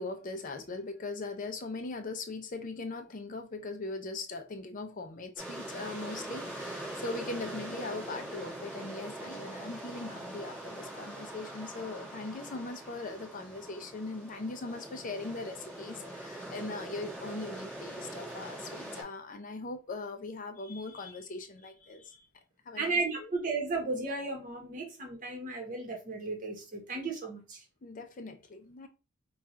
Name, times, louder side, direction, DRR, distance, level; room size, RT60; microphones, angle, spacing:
voice 1, 0.0-22.3 22.7-23.3 27.8-28.9, left 3 dB, 40° left, 0.5 m, -40 dB
sound 1, 5.4-19.0, right 1 dB, 10° right, 2.0 m, -42 dB
voice 2, 22.8-27.6, right 3 dB, 40° right, 1.2 m, -34 dB
3.5 x 2.4 x 4.3 m
head